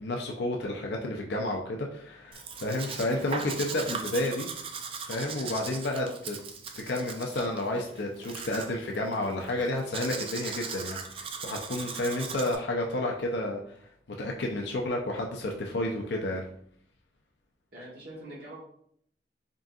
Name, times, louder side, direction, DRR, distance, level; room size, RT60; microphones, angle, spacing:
voice 1, 0.0-4.5 5.0-6.4 6.8-13.8 14.2-16.4, left 1 dB, 70° left, 1 dB, 0.5 m, -31 dB
Domestic sounds home sounds, 2.3-12.6, right 5 dB, 30° right, 0.4 m, -39 dB
voice 2, 17.7-18.6, right 1 dB, 60° right, -4 dB, 1.5 m, -44 dB
3.8 x 3.6 x 2.3 m, 0.65 s
head